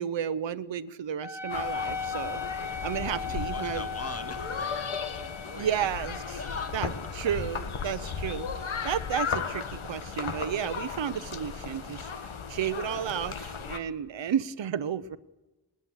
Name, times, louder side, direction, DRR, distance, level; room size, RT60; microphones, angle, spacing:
voice 1, 0.0-2.4 2.8-3.8 5.6-6.2 6.7-6.9 7.1-15.2, right 9 dB, 65° right, 13 dB, 0.8 m, -32 dB
Wind instrument woodwind instrument, 1.2-10.1, left 5 dB, 60° left, 2.1 m, -39 dB
sound 1, 1.5-13.8, left 6 dB, 85° left, 1.5 m, -36 dB
voice 2, 3.0-5.7 6.4-6.8 14.2-14.3, left 3 dB, 30° left, 9 dB, 1.9 m, -42 dB
20.5 x 19.5 x 8.0 m, 1.1 s
wide cardioid pair, 120°, 47 cm